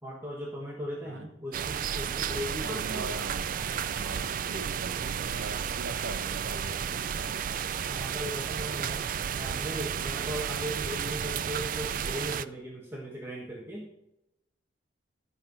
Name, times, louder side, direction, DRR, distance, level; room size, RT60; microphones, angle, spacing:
voice 1, 0.0-3.1 7.9-9.0 9.3-13.9, equal, 10° right, -3 dB, 1.3 m, -38 dB
sound 1, 1.5-12.5, right 8 dB, 45° right, 0.3 m, -32 dB
voice 2, 2.6-3.5 3.9-7.5, right 2 dB, 85° right, 6 dB, 1.1 m, -41 dB
12.5 x 5.5 x 5.4 m, 0.86 s
head